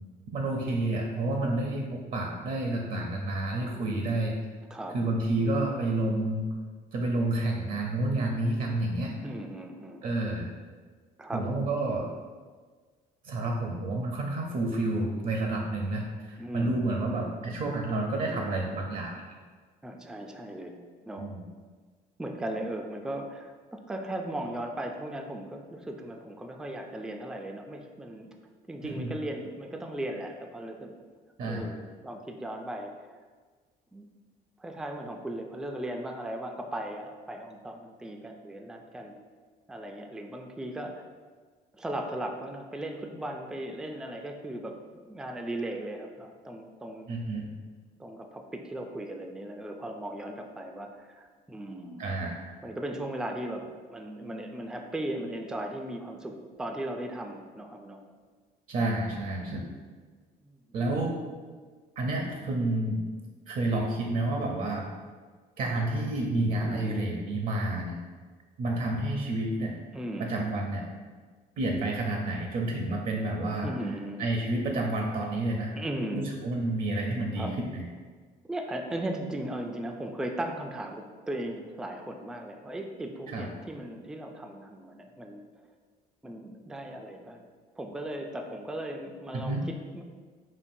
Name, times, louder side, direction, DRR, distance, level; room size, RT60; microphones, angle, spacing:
voice 1, 0.3-4.4 4.9-6.5 6.9-9.2 10.0-10.5 11.3-12.1 13.2-19.2 21.2-21.4 28.8-29.1 31.4-31.7 47.1-47.5 52.0-52.5 58.7-59.7 60.7-61.2 62.0-63.0 63.5-64.9 65.6-68.0 68.6-69.8 70.2-70.9 71.6-73.7 74.2-75.8 76.1-77.8 83.3-83.5 89.3-89.6, right 2 dB, 55° right, 0 dB, 0.6 m, -29 dB
voice 2, 9.2-10.1 11.2-11.5 16.4-16.8 19.8-20.8 21.1-21.3 22.2-28.3 28.7-30.9 31.4-33.1 33.9-34.1 34.6-39.1 39.7-41.0 41.7-44.8 45.1-47.1 48.0-52.0 52.6-56.3 56.6-58.0 60.4-60.6 66.6-67.1 69.9-70.4 73.6-74.2 75.8-76.3 77.4-77.6 78.5-85.4 86.2-87.4 87.8-90.0, right 1 dB, 5° right, 3 dB, 0.3 m, -37 dB
5.2 x 2.6 x 2.6 m, 1.5 s
cardioid pair, 110°, 17 cm